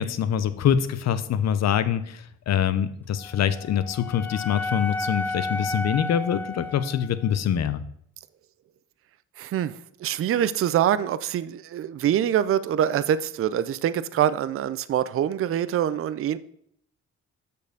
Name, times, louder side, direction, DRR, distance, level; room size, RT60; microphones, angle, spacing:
voice 1, 0.0-7.8, left 9 dB, 60° left, 0.8 m, -25 dB
Wind instrument woodwind instrument, 3.2-7.4, left 2 dB, 5° left, 0.8 m, -33 dB
voice 2, 9.4-16.4, right 10 dB, 45° right, 0.5 m, -25 dB
6.6 x 5.5 x 6.5 m
cardioid pair, 90°, 30 cm